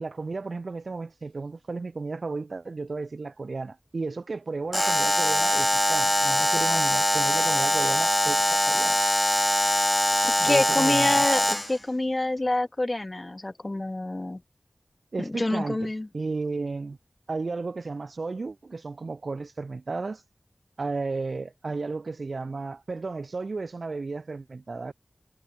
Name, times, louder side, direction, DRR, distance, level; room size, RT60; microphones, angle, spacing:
voice 1, 0.0-9.0 10.4-11.3 15.1-17.0 17.3-20.2 20.8-24.9, right 3 dB, 80° right, 1.5 m, -33 dB
Alarm, 4.7-11.8, equal, 10° left, 1.2 m, -23 dB
voice 2, 10.2-14.4 15.2-16.1, left 2 dB, 35° left, 2.3 m, -27 dB
wide cardioid pair, 55°, 0 cm